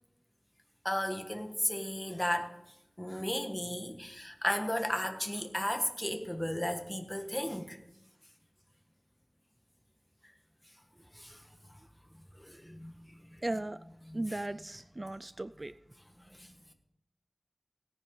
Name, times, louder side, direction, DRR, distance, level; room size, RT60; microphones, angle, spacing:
voice 1, 0.8-2.6 3.0-7.8 11.1-11.4 12.3-13.4 14.1-14.2 16.3-16.6, left 1 dB, 10° left, 1.5 m, -35 dB
voice 2, 13.4-13.8 14.1-15.7, right 1 dB, 40° right, 0.3 m, -36 dB
17.0 x 9.7 x 3.9 m
wide cardioid pair, 60°, 0 cm